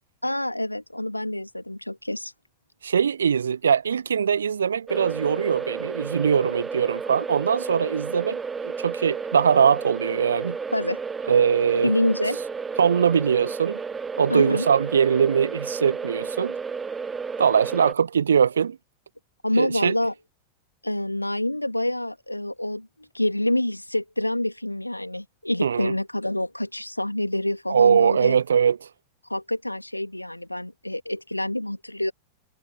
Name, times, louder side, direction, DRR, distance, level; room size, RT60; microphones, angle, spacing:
voice 1, 0.2-2.3 10.7-11.0 11.8-12.4 14.3-14.7 19.4-20.1 20.8-28.4 29.3-32.1, left 1 dB, 85° left, 2.5 m, -27 dB
voice 2, 2.8-10.6 11.3-11.9 12.8-13.8 14.2-16.5 17.4-18.8 19.6-19.9 25.6-25.9 27.7-28.8, right 7 dB, 70° right, 1.4 m, -21 dB
sound 1, 4.9-17.9, right 5 dB, 15° right, 1.2 m, -32 dB
figure-of-eight pair, 90°, 0 cm